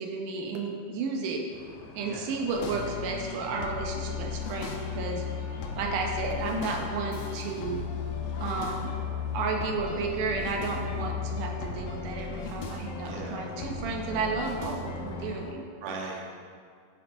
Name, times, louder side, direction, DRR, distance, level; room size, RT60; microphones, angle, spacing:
voice 1, 0.0-1.4 1.9-5.2 5.8-7.8 8.4-8.9 9.3-15.6, right 4 dB, 80° right, 1 dB, 2.2 m, -32 dB
sound 1, 1.5-15.5, left 2 dB, 75° left, 1.9 m, -45 dB
sound 2, 2.5-15.4, left 6 dB, 90° left, 1.5 m, -36 dB
voice 2, 13.0-13.4 15.8-16.2, right 3 dB, 65° right, -2 dB, 1.6 m, -38 dB
11.0 x 4.4 x 2.6 m, 2.1 s
omnidirectional pair, 3.7 m